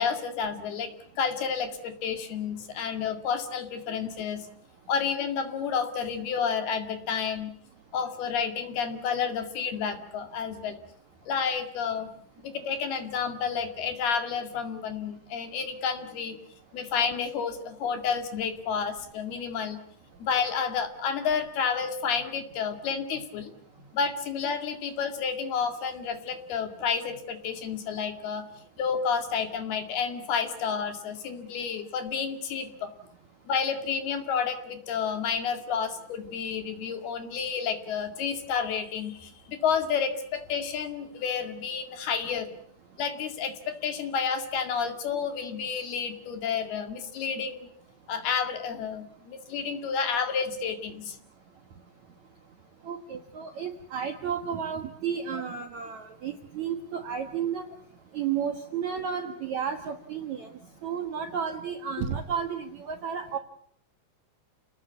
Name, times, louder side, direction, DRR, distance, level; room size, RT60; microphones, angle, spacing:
voice 1, 0.0-4.5 4.9-7.5 7.9-10.8 11.3-12.1 12.4-16.4 16.7-19.8 20.2-23.5 23.9-28.4 28.8-32.9 33.5-42.5 43.0-47.7 48.1-51.2, left 6 dB, 60° left, 6 dB, 3.9 m, -30 dB
voice 2, 52.8-57.7 58.1-60.5 60.8-63.4, right 7 dB, 60° right, 6 dB, 1.9 m, -32 dB
30.0 x 18.5 x 8.3 m, 0.65 s
omnidirectional pair, 5.2 m